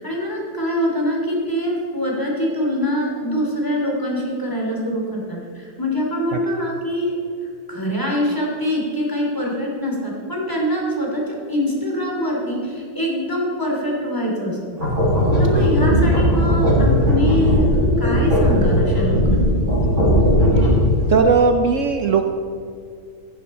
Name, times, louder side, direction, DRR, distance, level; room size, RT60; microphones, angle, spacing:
voice 1, 0.0-7.2 7.7-14.6 15.4-19.6, equal, 10° left, -2 dB, 2.7 m, -24 dB
sound 1, 14.8-21.0, equal, 45° right, 4.4 m, -17 dB
voice 2, 21.1-22.3, right 5 dB, 90° right, 5 dB, 0.6 m, -17 dB
15.5 x 10.0 x 4.3 m, 2.4 s
omnidirectional pair, 2.1 m